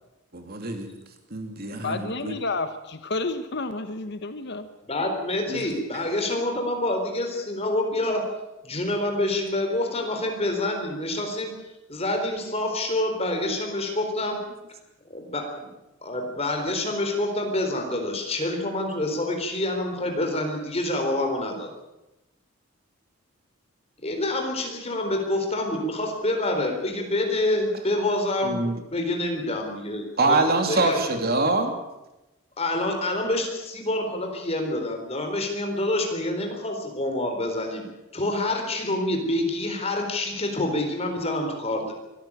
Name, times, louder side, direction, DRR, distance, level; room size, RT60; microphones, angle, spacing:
voice 1, 0.3-0.9 1.3-2.3 5.5-5.6 28.4-28.8 30.2-31.7, right 2 dB, 45° right, 5 dB, 3.0 m, -24 dB
voice 2, 1.8-4.7, left 3 dB, 50° left, 10 dB, 1.1 m, -30 dB
voice 3, 4.9-8.3 8.6-11.5 11.9-14.4 15.1-15.7 16.0-21.7 24.0-30.4 30.7-31.0 32.6-37.8 38.1-41.9, left 1 dB, 30° left, 4 dB, 4.1 m, -27 dB
23.5 x 14.0 x 8.9 m, 0.97 s
head